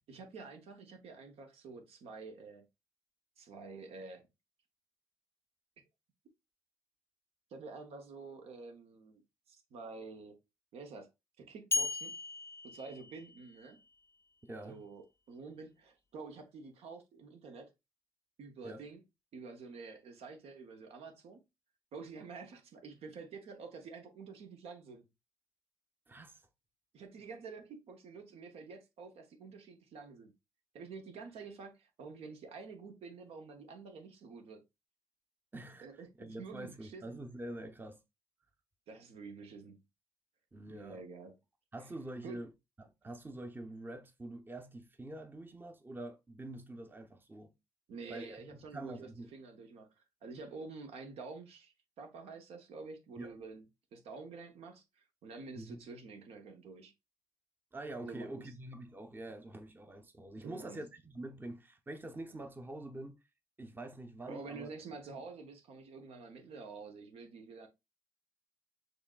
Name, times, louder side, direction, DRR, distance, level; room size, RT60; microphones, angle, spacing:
voice 1, 0.1-2.6 3.4-4.2 7.5-9.2 9.5-10.4 10.7-11.1 11.4-12.1 12.6-13.8 14.6-17.7 18.4-19.0 19.3-21.4 21.9-25.0 26.9-30.3 30.7-34.6 35.8-37.2 38.9-39.8 40.7-41.3 42.2-42.4 47.9-49.9 50.2-53.6 53.9-56.9 58.0-58.3 60.4-60.8 64.3-67.7, right 4 dB, 70° right, 0.8 m, -48 dB
sound 1, 11.7-13.8, left 4 dB, 25° left, 0.5 m, -37 dB
voice 2, 14.4-14.8 18.6-18.8 26.1-26.4 35.5-38.0 40.5-41.0 41.7-42.5 42.8-47.5 48.1-49.3 53.2-53.3 55.6-55.8 57.7-63.2 63.6-64.7 65.1-65.2, right 1 dB, 20° right, 0.7 m, -46 dB
4.7 x 3.2 x 2.3 m
supercardioid pair, 55°, 10 cm